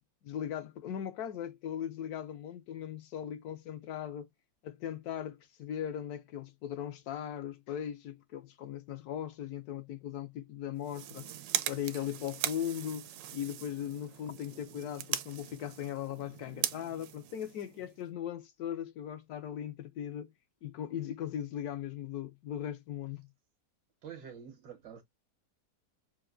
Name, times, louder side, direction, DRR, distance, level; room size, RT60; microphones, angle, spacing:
voice 1, 0.2-4.3 4.6-11.3 11.7-20.3 20.6-23.3, left 10 dB, 70° left, 1.0 m, -39 dB
sound 1, 10.8-18.0, right 12 dB, 75° right, 1.0 m, -39 dB
voice 2, 24.0-25.0, right 8 dB, 90° right, 1.7 m, -47 dB
5.7 x 2.5 x 2.5 m
omnidirectional pair, 1.8 m